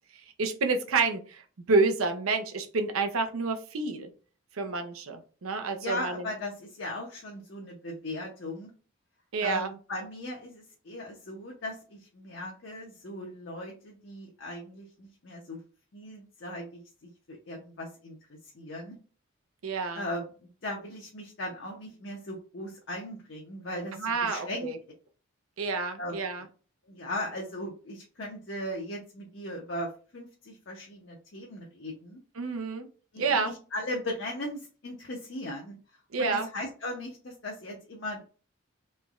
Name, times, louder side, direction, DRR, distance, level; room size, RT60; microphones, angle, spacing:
voice 1, 0.4-1.4 1.7-4.1 4.6-6.2 9.3-9.7 19.6-20.1 24.0-24.8 25.6-26.4 32.4-32.9 33.2-33.5 36.1-36.5, right 4 dB, 80° right, 6 dB, 0.6 m, -28 dB
voice 2, 5.7-8.7 9.4-15.6 15.9-16.8 17.3-19.0 19.9-24.7 26.0-26.4 26.9-32.2 33.1-35.8 36.2-38.2, left 1 dB, 55° left, -1 dB, 0.6 m, -38 dB
3.2 x 3.0 x 2.3 m, 0.37 s
head